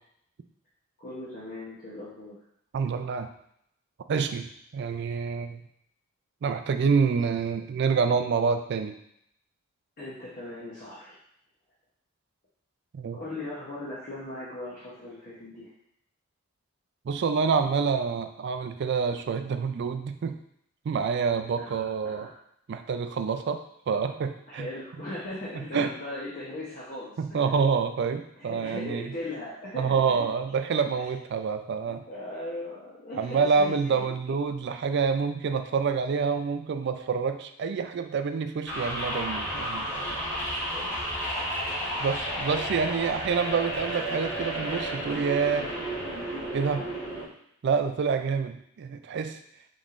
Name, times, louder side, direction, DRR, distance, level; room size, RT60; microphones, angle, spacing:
voice 1, 1.0-2.4 7.2-7.3 10.0-11.2 13.1-15.7 21.6-22.3 24.5-27.6 28.4-29.9 32.1-34.1 40.7-41.0 46.8-47.1, left 1 dB, 45° left, -8 dB, 0.9 m, -39 dB
voice 2, 2.7-3.3 4.1-4.5 4.7-5.6 6.4-9.0 12.9-13.2 17.1-20.4 20.9-22.3 22.7-24.7 25.6-25.9 27.2-29.0 29.8-32.0 33.2-40.2 42.0-45.7 46.5-46.9 47.6-49.4, right 5 dB, 60° right, 8 dB, 0.4 m, -27 dB
sound 1, 38.7-47.2, equal, 15° left, 1.4 m, -32 dB
5.3 x 3.2 x 2.5 m, 0.74 s
head